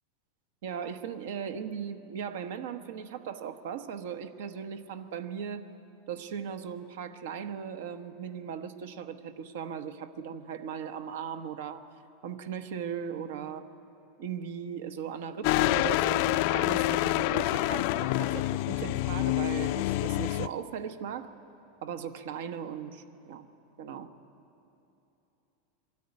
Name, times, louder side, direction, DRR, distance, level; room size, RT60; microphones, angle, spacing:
voice 1, 0.6-5.7 6.1-11.8 12.2-13.7 14.2-21.3 21.8-23.5 23.8-24.1, right 7 dB, 75° right, 10 dB, 1.1 m, -38 dB
sound 1, 15.4-20.5, left 17 dB, 55° left, 0.4 m, -27 dB
23.5 x 13.0 x 9.6 m, 2.9 s
supercardioid pair, 150°, 0 cm